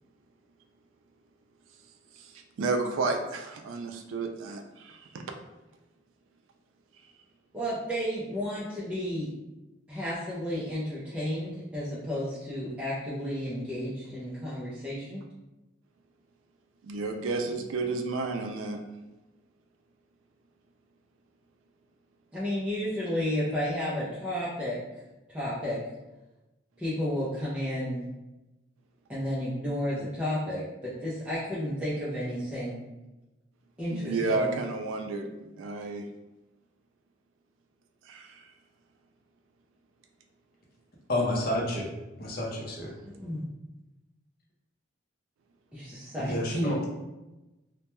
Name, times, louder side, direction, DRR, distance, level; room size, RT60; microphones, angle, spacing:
voice 1, 2.2-5.2 16.8-18.8 33.9-36.0 38.1-38.5, right 3 dB, 85° right, 5 dB, 0.3 m, -32 dB
voice 2, 7.5-9.3 9.9-15.2 22.3-24.8 25.3-25.8 26.8-28.1 29.1-32.8 33.8-34.5 43.2-43.4 45.7-46.7, equal, 5° right, -9 dB, 0.4 m, -32 dB
voice 3, 41.1-41.9 42.2-42.9 46.2-46.8, left 1 dB, 50° left, -2 dB, 0.6 m, -29 dB
2.1 x 2.1 x 2.9 m, 1.0 s
head